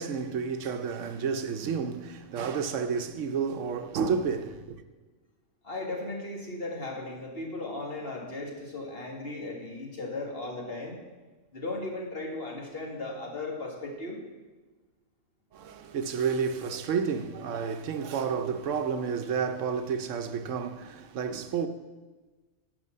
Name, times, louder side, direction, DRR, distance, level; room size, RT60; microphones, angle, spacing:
voice 1, 0.0-4.8 15.5-21.7, right 6 dB, 75° right, 1.0 m, -30 dB
voice 2, 5.6-11.0 11.5-14.2, left 2 dB, 50° left, 2.0 m, -36 dB
11.0 x 5.2 x 7.6 m
omnidirectional pair, 1.3 m